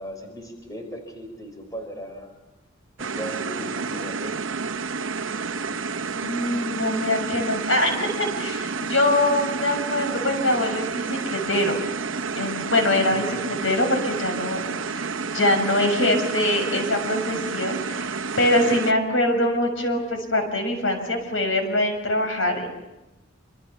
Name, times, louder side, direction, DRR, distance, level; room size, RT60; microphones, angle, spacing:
voice 1, 0.0-2.3 3.0-4.5 13.1-13.2 13.5-13.6, equal, 20° left, 4 dB, 4.9 m, -38 dB
sound 1, 3.0-18.9, right 4 dB, 75° right, 1.0 m, -30 dB
voice 2, 6.2-11.7 12.4-22.7, left 1 dB, 75° left, 5 dB, 6.7 m, -23 dB
27.5 x 27.0 x 7.3 m, 0.97 s
head